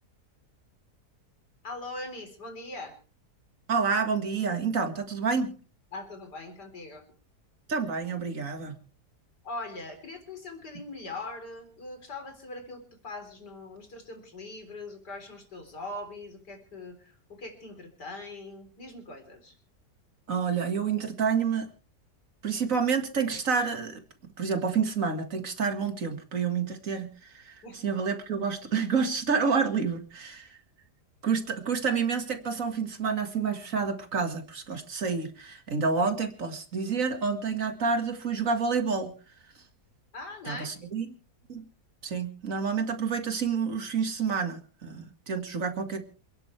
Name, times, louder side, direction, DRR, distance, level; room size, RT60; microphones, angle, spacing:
voice 1, 1.6-3.0 5.9-7.0 9.4-19.6 27.6-27.8 40.1-40.7, left 2 dB, 90° left, 4.5 m, -41 dB
voice 2, 3.7-5.5 7.7-8.8 20.3-21.7 22.4-24.0 24.4-30.6 31.2-39.1 40.5-41.1 41.5-41.6 42.0-46.0, right 5 dB, 55° right, 2.2 m, -29 dB
28.0 x 10.5 x 3.3 m
omnidirectional pair, 1.7 m